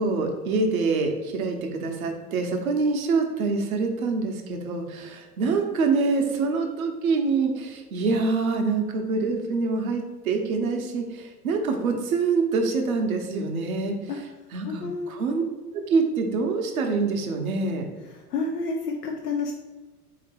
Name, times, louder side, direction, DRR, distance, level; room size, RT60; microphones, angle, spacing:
voice 1, 0.0-13.9 14.5-15.4 15.7-17.9, right 4 dB, 65° right, 4 dB, 0.9 m, -25 dB
voice 2, 14.6-15.2 18.3-19.5, left 4 dB, 80° left, 1 dB, 0.6 m, -29 dB
4.2 x 2.8 x 3.2 m, 1.3 s
figure-of-eight pair, 90°, 46 cm